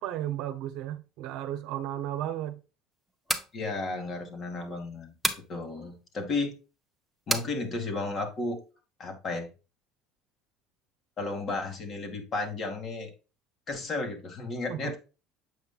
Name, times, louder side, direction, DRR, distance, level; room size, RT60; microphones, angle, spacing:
voice 1, 0.0-2.6 14.7-14.9, right 12 dB, 70° right, 0.8 m, -34 dB
sound 1, 3.1-3.5 5.2-5.5 7.3-7.5, right 1 dB, ahead, 1.1 m, -29 dB
voice 2, 3.5-5.1 5.5-6.5 7.3-8.6 9.0-9.5 11.2-13.1 13.7-15.0, left 3 dB, 40° left, 2.2 m, -33 dB
7.8 x 5.4 x 2.4 m
supercardioid pair, 110°, 0 cm